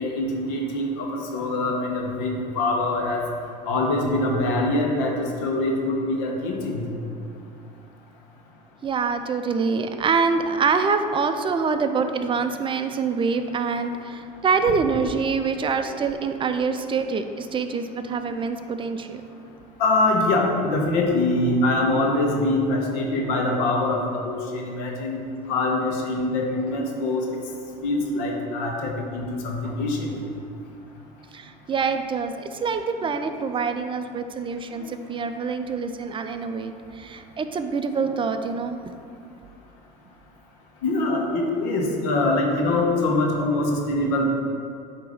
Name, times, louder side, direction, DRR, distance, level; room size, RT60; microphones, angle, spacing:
voice 1, 0.0-3.2 3.7-6.9 15.8-16.0 16.7-16.8 18.1-18.2 19.8-25.2 25.5-27.3 27.8-30.2 33.0-33.1 40.8-44.2, left 2 dB, 70° left, 0 dB, 1.2 m, -24 dB
voice 2, 8.8-19.2 31.3-38.8, right 5 dB, 25° right, 8 dB, 0.4 m, -25 dB
8.2 x 2.9 x 5.0 m, 2.5 s
supercardioid pair, 90°, 21 cm